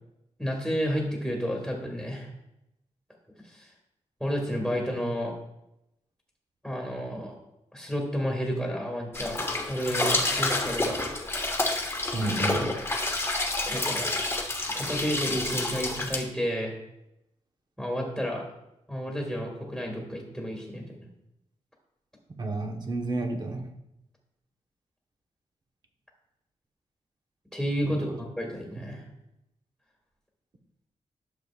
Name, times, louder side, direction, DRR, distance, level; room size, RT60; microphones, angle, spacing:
voice 1, 0.4-2.3 3.4-3.7 4.2-5.3 6.6-7.3 7.7-9.4 9.7-11.0 13.7-14.2 14.7-16.7 17.8-18.4 18.9-21.1 27.5-29.0, equal, ahead, -2 dB, 1.7 m, -31 dB
sound 1, 9.1-16.2, left 2 dB, 20° left, 1.2 m, -29 dB
voice 2, 12.1-12.7 22.4-23.6 28.1-28.2 28.8-28.9, right 2 dB, 35° right, 2 dB, 1.1 m, -30 dB
11.5 x 6.8 x 2.4 m, 0.86 s
wide cardioid pair, 115°, 12 cm